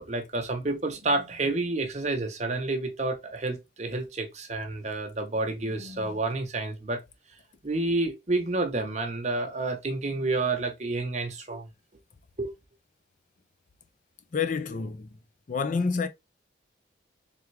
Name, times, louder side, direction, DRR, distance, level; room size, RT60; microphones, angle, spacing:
voice 1, 0.0-7.0 7.6-11.7 12.4-12.5, right 2 dB, 35° right, 0.8 m, -29 dB
voice 2, 14.3-15.1 15.5-16.1, left 5 dB, 40° left, 0.4 m, -28 dB
3.5 x 3.4 x 3.2 m
head